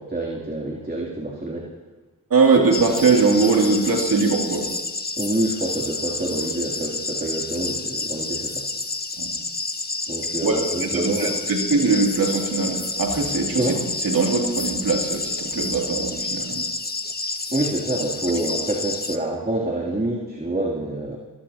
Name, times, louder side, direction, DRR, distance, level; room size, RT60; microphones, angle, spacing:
voice 1, 0.0-1.6 5.2-8.6 10.1-11.3 13.6-13.8 17.5-21.2, right 1 dB, 25° right, -4 dB, 3.0 m, -27 dB
voice 2, 2.3-4.7 9.2-9.3 10.4-13.8 14.0-16.6, right 4 dB, 85° right, -1 dB, 2.9 m, -21 dB
sound 1, 2.7-19.2, left 3 dB, 30° left, 1.2 m, -29 dB
23.5 x 19.5 x 2.9 m, 1.2 s
cardioid pair, 50°, 34 cm